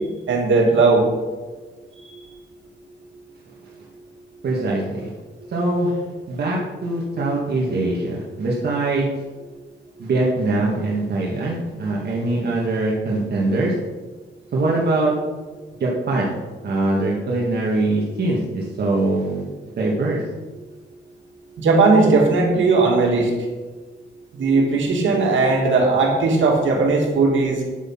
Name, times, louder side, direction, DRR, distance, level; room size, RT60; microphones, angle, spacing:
voice 1, 0.3-1.0 21.6-23.3 24.3-27.6, right 3 dB, 85° right, 0 dB, 2.6 m, -17 dB
voice 2, 4.4-5.1 5.5-6.0 6.3-9.1 10.0-13.7 14.5-15.1 15.8-16.4 16.6-19.5 19.8-20.2, right 2 dB, 55° right, -4 dB, 2.0 m, -22 dB
9.9 x 8.3 x 5.8 m, 1.3 s
wide cardioid pair, 170°, 19 cm